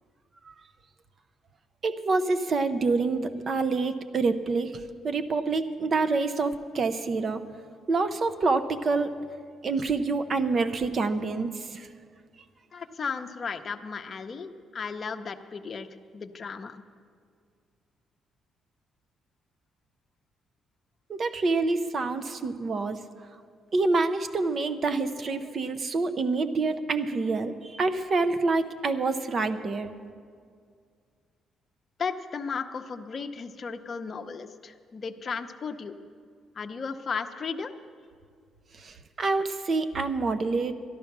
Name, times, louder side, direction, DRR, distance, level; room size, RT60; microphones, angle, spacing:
voice 1, 1.8-7.4 7.9-9.1 9.6-11.9 21.1-23.0 23.7-29.9 38.7-40.7, right 3 dB, 45° right, 9 dB, 0.7 m, -27 dB
voice 2, 12.7-15.9 16.1-16.8 32.0-35.9 36.6-37.7, left 5 dB, 40° left, 6 dB, 0.7 m, -35 dB
12.5 x 12.0 x 6.0 m, 2.1 s
cardioid pair, 90°, 0 cm